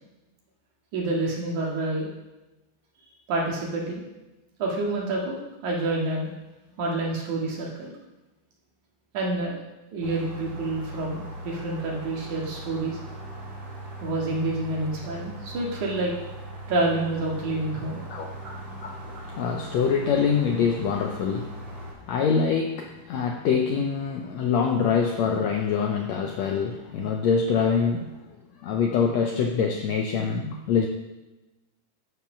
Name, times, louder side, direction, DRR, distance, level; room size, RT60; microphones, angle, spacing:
voice 1, 0.9-2.1 3.3-4.1 4.6-5.4 5.6-6.3 6.8-7.9 9.1-9.6 9.9-13.0 14.0-16.1 16.7-18.0 18.4-18.5, right 2 dB, 65° right, -2 dB, 3.1 m, -28 dB
sound 1, 10.0-21.9, right 1 dB, 40° right, 3.1 m, -39 dB
voice 2, 18.8-28.1 28.6-30.9, left 6 dB, 85° left, 2 dB, 1.6 m, -25 dB
12.0 x 5.0 x 5.9 m, 1.0 s
omnidirectional pair, 3.9 m